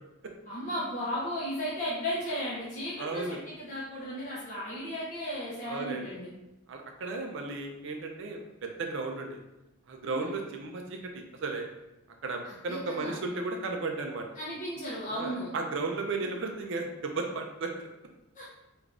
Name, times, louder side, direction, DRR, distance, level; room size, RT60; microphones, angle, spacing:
voice 1, 0.5-6.3 10.0-10.4 12.4-13.2 14.4-15.5 18.3-18.4, equal, 35° left, -8 dB, 0.6 m, -35 dB
voice 2, 3.0-3.4 5.7-6.2 6.7-9.4 9.9-11.7 12.2-14.3 15.1-17.9, right 3 dB, 55° right, 3 dB, 0.4 m, -35 dB
3.3 x 2.4 x 2.4 m, 0.94 s
head